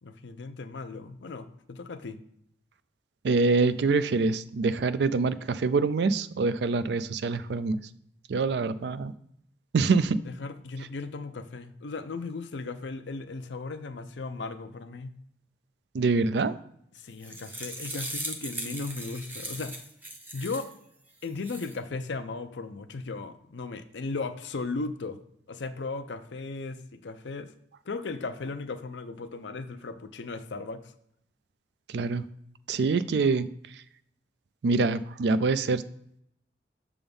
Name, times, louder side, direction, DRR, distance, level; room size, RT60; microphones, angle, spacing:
voice 1, 0.0-2.2 10.2-15.2 17.0-19.8 20.3-20.7 21.2-25.2 25.5-27.5 27.8-30.9, left 3 dB, 75° left, 10 dB, 0.6 m, -36 dB
voice 2, 3.2-7.8 8.3-9.1 9.7-10.2 15.9-16.6 31.9-32.2 32.7-33.5 34.6-35.8, right 4 dB, 65° right, 14 dB, 0.4 m, -25 dB
sound 1, 17.0-20.7 21.2-21.7, right 1 dB, 10° right, 0.6 m, -38 dB
7.0 x 3.6 x 5.3 m, 0.72 s
head